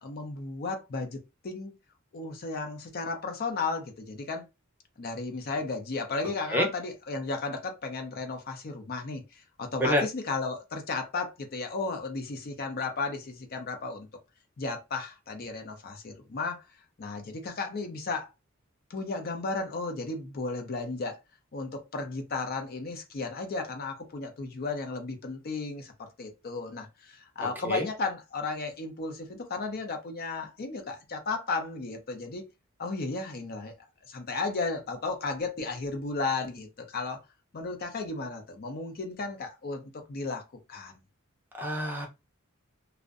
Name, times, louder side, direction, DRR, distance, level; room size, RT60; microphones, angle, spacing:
voice 1, 0.0-1.7 2.1-4.4 5.0-14.1 14.6-16.6 17.0-18.3 18.9-21.2 21.5-32.5 32.8-33.7 34.1-37.2 37.5-40.4 40.7-40.9, left 3 dB, 45° left, 0.5 m, -34 dB
voice 2, 27.4-27.9 41.6-42.1, equal, 10° right, 0.5 m, -27 dB
2.5 x 2.1 x 2.4 m
head